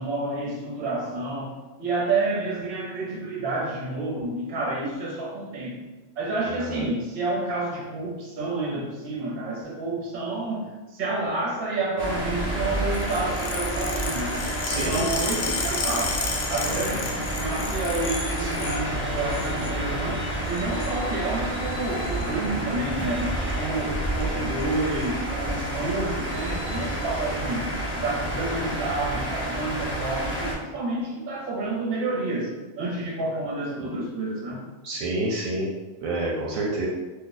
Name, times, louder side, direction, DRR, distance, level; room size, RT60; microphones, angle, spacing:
voice 1, 0.0-1.5 1.8-5.8 6.2-16.2 16.5-34.6, right 2 dB, 50° right, -3 dB, 0.9 m, -29 dB
voice 2, 6.5-6.8 14.6-15.0 33.8-33.9 34.8-35.7 36.0-36.9, right 2 dB, 75° right, -3 dB, 1.0 m, -28 dB
sound 1, 12.0-30.5, right 1 dB, 10° right, 0.6 m, -29 dB
sound 2, 12.9-18.8 19.2-19.7 20.5-21.0 22.0-22.3 23.2-23.5 23.8-23.9 24.2-24.3 24.6-25.1 25.7-25.8 26.7-26.8, left 4 dB, 85° left, 1.0 m, -32 dB
2.5 x 2.4 x 3.9 m, 1.2 s
omnidirectional pair, 1.5 m